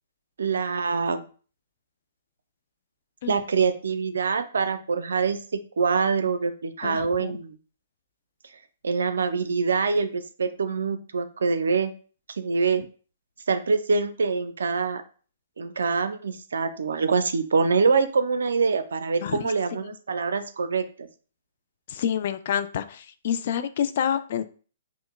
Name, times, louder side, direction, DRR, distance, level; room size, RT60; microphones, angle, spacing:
voice 1, 0.4-1.3 3.3-7.6 8.8-11.9 12.4-12.8 13.5-15.0 15.6-21.1, right 5 dB, 80° right, 10 dB, 0.4 m, -25 dB
voice 2, 6.8-7.4 19.2-19.5 19.8-20.0 21.9-24.4, left 9 dB, 55° left, 11 dB, 0.3 m, -28 dB
5.2 x 2.0 x 2.3 m, 0.39 s
hypercardioid pair, 130°, 0 cm